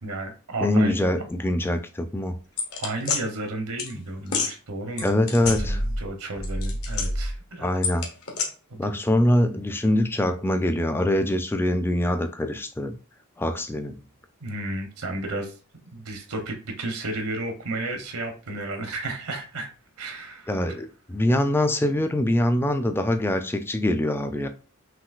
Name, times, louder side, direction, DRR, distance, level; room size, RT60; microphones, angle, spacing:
voice 1, 0.0-1.0 2.8-5.1 5.4-7.7 8.7-8.9 14.4-15.6 15.9-19.7 20.0-20.8, right 2 dB, 80° right, 5 dB, 0.9 m, -33 dB
voice 2, 0.6-2.4 5.0-5.8 7.6-8.1 8.8-13.0 13.4-14.0 20.5-24.5, left 1 dB, 10° left, 7 dB, 0.4 m, -23 dB
sound 1, 2.6-3.2 3.8-3.9 4.3-4.5 5.0-6.1 6.4-7.3 7.8-8.5, left 3 dB, 70° left, 1.2 m, -27 dB
5.9 x 2.8 x 2.4 m, 0.35 s
head